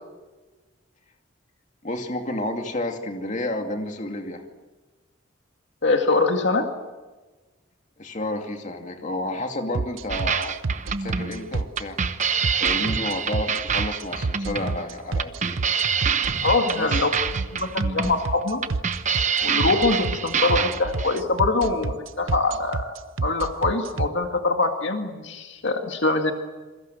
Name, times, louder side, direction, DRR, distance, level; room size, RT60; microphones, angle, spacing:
voice 1, 1.8-4.4 8.0-10.6 11.0-12.0 12.6-15.6 16.8-17.0, left 1 dB, 35° left, 4 dB, 2.5 m, -30 dB
voice 2, 5.8-6.7 16.4-18.6 19.4-22.9 23.2-26.3, left 3 dB, 60° left, 4 dB, 2.1 m, -23 dB
sound 1, 9.7-24.1, right 3 dB, 80° right, 0.7 m, -28 dB
sound 2, 10.1-21.2, right 6 dB, 35° right, 0.9 m, -26 dB
27.5 x 22.0 x 7.9 m, 1.2 s
head